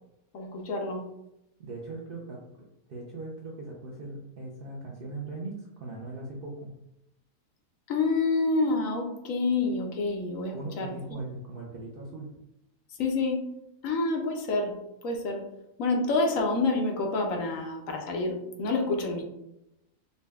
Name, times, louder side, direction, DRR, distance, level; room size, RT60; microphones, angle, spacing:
voice 1, 0.3-1.0 7.9-10.9 12.9-13.4 13.8-14.7 15.0-15.4 15.8-19.2, left 3 dB, 70° left, 2 dB, 1.0 m, -28 dB
voice 2, 1.6-2.4 2.9-6.7 10.5-12.3, right 2 dB, 60° right, -3 dB, 0.6 m, -39 dB
4.1 x 2.2 x 3.3 m, 0.86 s
omnidirectional pair, 1.6 m